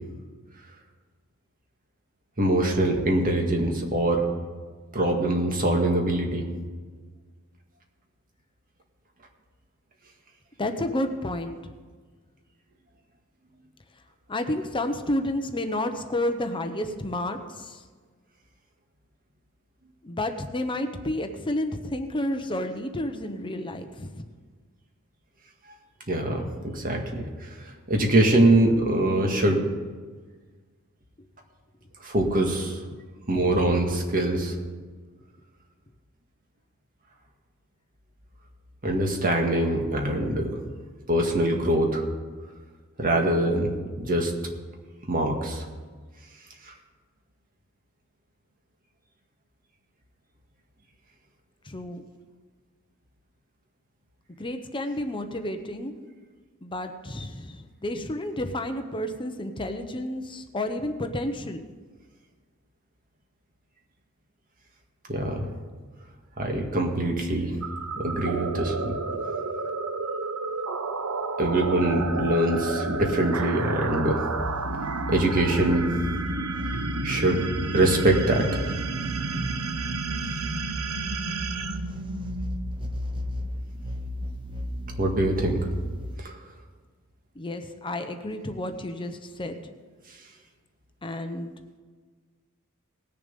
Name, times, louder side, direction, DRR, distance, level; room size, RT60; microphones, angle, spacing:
voice 1, 2.4-4.2 4.9-6.5 26.1-27.2 27.9-29.6 32.0-32.8 33.3-34.5 38.8-40.5 41.1-42.0 43.0-43.7 44.0-44.3 45.1-45.6 65.1-65.5 66.4-67.6 68.0-69.0 71.4-74.3 75.1-75.9 77.0-77.4 77.7-78.7 85.0-85.7 86.2-86.4, right 1 dB, 40° right, 2 dB, 1.8 m, -23 dB
voice 2, 10.6-11.7 14.3-17.8 20.0-24.2 51.6-52.0 54.4-55.9 56.6-61.6 87.3-89.6 91.0-91.5, left 1 dB, 25° left, 7 dB, 0.8 m, -31 dB
sound 1, 67.6-82.7, right 3 dB, 75° right, 0.8 m, -31 dB
sound 2, 74.4-86.2, equal, 25° right, 0.7 m, -35 dB
19.0 x 6.9 x 5.3 m, 1.5 s
head